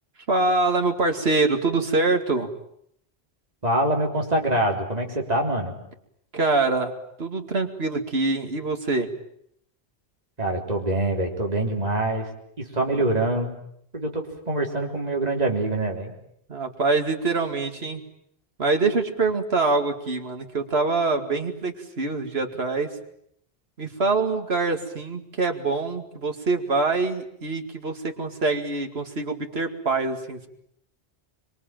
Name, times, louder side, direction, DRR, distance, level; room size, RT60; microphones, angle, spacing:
voice 1, 0.3-2.5 6.3-6.9 7.2-9.1 16.5-18.0 18.6-22.9 23.8-30.5, right 3 dB, 65° right, 5 dB, 2.6 m, -24 dB
voice 2, 3.6-5.8 10.4-12.3 12.6-13.5 13.9-16.1, right 1 dB, 35° right, 1 dB, 3.9 m, -25 dB
25.5 x 24.0 x 9.1 m, 0.72 s
omnidirectional pair, 1.1 m